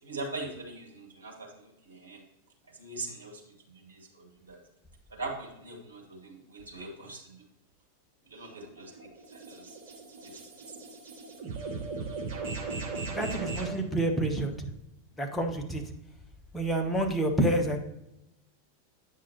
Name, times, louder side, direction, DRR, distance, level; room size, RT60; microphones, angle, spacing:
voice 1, 0.0-2.2 2.7-4.6 5.1-7.4 8.3-8.9 9.3-9.7 10.2-10.4, right 2 dB, 75° right, 1 dB, 1.7 m, -42 dB
sound 1, 8.3-13.8, right 4 dB, 50° right, 2.1 m, -38 dB
voice 2, 13.1-14.7 15.2-15.8 16.5-17.8, right 1 dB, 10° left, 3 dB, 1.0 m, -28 dB
8.9 x 6.1 x 2.9 m, 0.87 s
figure-of-eight pair, 90°, 0 cm